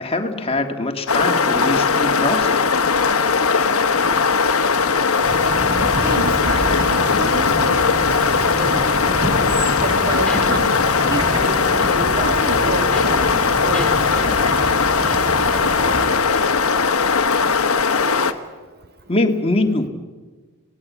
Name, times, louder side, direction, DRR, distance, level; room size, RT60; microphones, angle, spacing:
voice 1, 0.0-2.6 19.1-19.9, left 2 dB, 25° left, 5 dB, 1.7 m, -22 dB
sound 1, 1.1-18.3, left 5 dB, 70° left, 1.2 m, -19 dB
sound 2, 5.2-16.1, equal, 20° right, 3.8 m, -28 dB
voice 2, 6.0-8.8 9.8-13.9, right 2 dB, 45° right, 7 dB, 1.5 m, -30 dB
sound 3, 8.6-17.5, left 1 dB, ahead, 3.0 m, -38 dB
27.0 x 18.5 x 8.4 m, 1.4 s
head